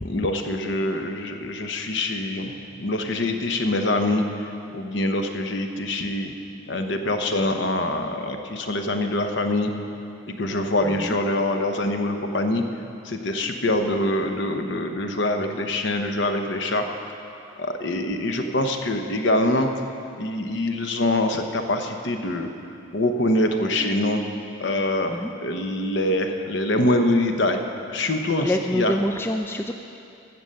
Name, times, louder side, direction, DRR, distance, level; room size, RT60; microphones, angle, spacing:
voice 1, 0.0-6.3 6.7-9.7 10.4-12.6 13.0-16.8 17.6-19.7 20.2-22.5 22.9-24.2 24.6-27.6 27.9-29.0, left 1 dB, 60° left, 5 dB, 0.9 m, -24 dB
voice 2, 28.4-29.7, left 1 dB, 10° left, 4 dB, 0.3 m, -26 dB
15.0 x 6.9 x 6.6 m, 2.6 s
head